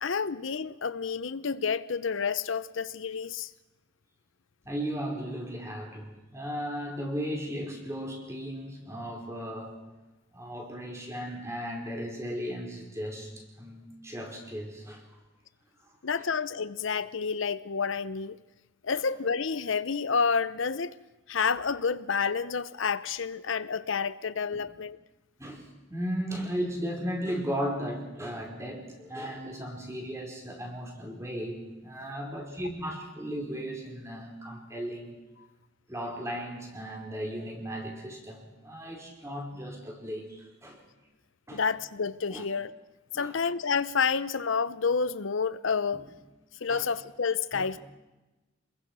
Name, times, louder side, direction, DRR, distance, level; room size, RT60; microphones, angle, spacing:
voice 1, 0.0-3.5 16.0-18.4 18.8-20.9 21.3-25.0 41.5-42.7 43.1-46.0 46.6-47.8, left 5 dB, 65° left, 0.7 m, -29 dB
voice 2, 4.6-9.8 10.3-15.0 15.8-15.9 18.9-19.0 24.5-24.7 25.4-35.1 35.9-40.8 41.5-41.6 42.3-42.4 43.1-43.4 45.9-46.0 46.7-46.9 47.5-47.7, equal, 15° right, 4.8 m, -36 dB
27.5 x 21.5 x 6.2 m
head